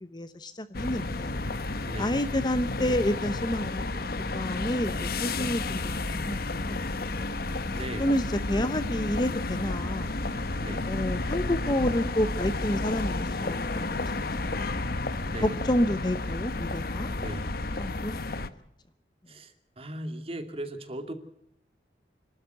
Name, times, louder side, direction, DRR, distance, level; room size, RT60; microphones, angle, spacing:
voice 1, 0.0-1.4 2.0-4.1 4.3-6.8 7.1-7.3 8.0-10.2 10.8-14.0 14.4-14.8 15.4-17.1 17.8-18.4, left 1 dB, 25° left, 12 dB, 0.8 m, -30 dB
sound 1, 0.7-18.5, left 2 dB, 60° left, 1.1 m, -31 dB
voice 2, 1.8-2.1 5.3-5.6 7.7-8.1 10.6-10.9 15.2-15.5 17.1-17.5 19.3-21.1, right 1 dB, 35° right, 7 dB, 2.5 m, -38 dB
27.0 x 12.5 x 8.0 m, 0.77 s
head